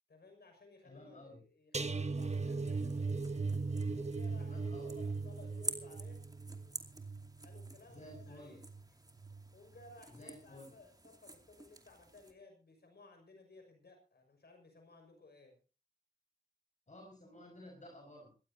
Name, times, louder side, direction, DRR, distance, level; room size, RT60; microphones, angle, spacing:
voice 1, 0.1-3.1 3.9-6.2 7.4-8.7 9.5-15.6, left 3 dB, 90° left, 5 dB, 6.0 m, -59 dB
voice 2, 0.8-1.4 4.4-4.9 7.9-8.6 10.1-10.7 16.9-18.3, left 1 dB, 50° left, 1 dB, 5.9 m, -53 dB
sound 1, 1.7-8.8 9.2-9.5 9.8-9.9, right 4 dB, 45° right, 1.3 m, -38 dB
sound 2, 2.2-12.3, right 1 dB, 25° right, 2.5 m, -50 dB
21.5 x 15.5 x 2.8 m, 0.32 s
wide cardioid pair, 60°, 16 cm